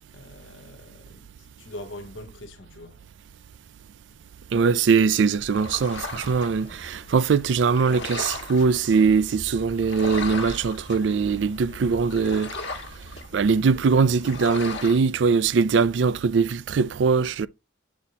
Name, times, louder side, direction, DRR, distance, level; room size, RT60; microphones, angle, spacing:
voice 1, 0.1-3.0, left 1 dB, 85° left, 0.8 m, -43 dB
voice 2, 4.5-12.5 13.3-17.5, right 5 dB, 70° right, 0.4 m, -21 dB
sound 1, 5.4-15.0, left 2 dB, 70° left, 1.3 m, -37 dB
8.1 x 4.2 x 2.9 m
head